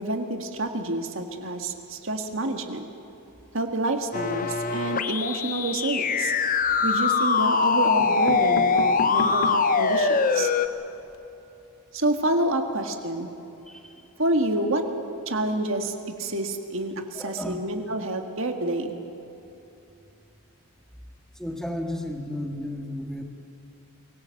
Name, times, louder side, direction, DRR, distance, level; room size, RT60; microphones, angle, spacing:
voice 1, 0.0-2.8 3.5-6.3 6.8-10.5 11.9-13.3 14.2-14.8 15.3-19.0, right 2 dB, 60° right, 5 dB, 1.8 m, -28 dB
sound 1, 4.1-10.7, left 5 dB, 40° left, 0.8 m, -23 dB
sound 2, 6.3-6.9 7.6-7.7 8.0-9.8 10.3-10.4 10.6-10.7 11.0-11.2, left 2 dB, 75° left, 1.3 m, -34 dB
voice 2, 13.7-14.1 17.1-17.6 21.3-23.2, left 1 dB, ahead, 3 dB, 1.8 m, -33 dB
24.0 x 17.5 x 7.8 m, 2.8 s
head